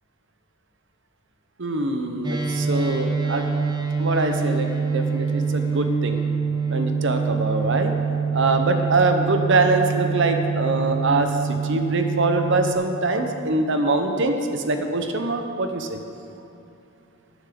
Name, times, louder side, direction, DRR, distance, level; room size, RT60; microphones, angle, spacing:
voice 1, 1.6-3.5 4.0-6.2 6.7-7.9 8.3-16.0, right 2 dB, 55° right, 6 dB, 0.9 m, -23 dB
sound 1, 2.2-12.7, right 5 dB, 20° right, 0.8 m, -25 dB
18.0 x 7.1 x 3.8 m, 2.8 s
head